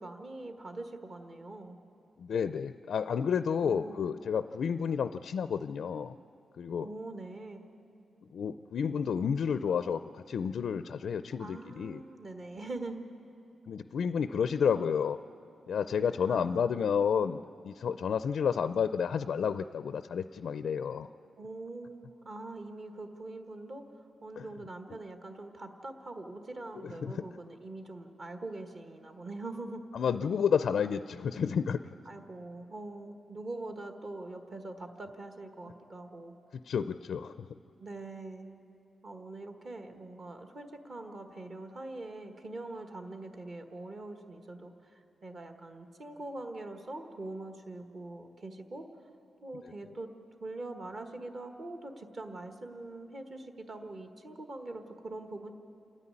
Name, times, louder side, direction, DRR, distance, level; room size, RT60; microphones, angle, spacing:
voice 1, 0.0-1.8 3.6-4.1 6.8-7.7 11.4-13.0 16.2-16.7 21.4-29.9 32.0-36.4 37.8-38.6 39.0-48.9 49.4-50.1 50.4-55.5, right 2 dB, 40° right, 6 dB, 1.3 m, -43 dB
voice 2, 2.2-6.2 6.6-6.9 8.3-10.0 10.3-12.0 13.7-15.2 15.7-21.1 24.4-24.5 26.8-27.2 29.9-31.8 36.5-37.5, left 7 dB, 65° left, 12 dB, 0.4 m, -30 dB
27.5 x 9.8 x 9.7 m, 2.6 s
wide cardioid pair, 150°, 0 cm